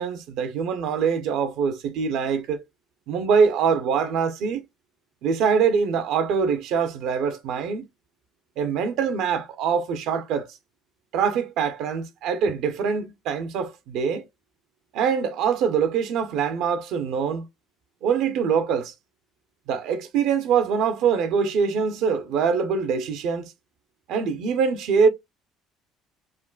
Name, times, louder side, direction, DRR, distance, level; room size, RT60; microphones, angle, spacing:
voice 1, 0.0-2.6 3.1-4.6 5.2-7.9 8.6-10.5 11.1-14.3 14.9-17.5 18.0-18.9 19.7-23.5 24.1-25.1, right 6 dB, 70° right, 0.6 m, -24 dB
3.7 x 2.1 x 2.3 m
cardioid pair, 110°, 0 cm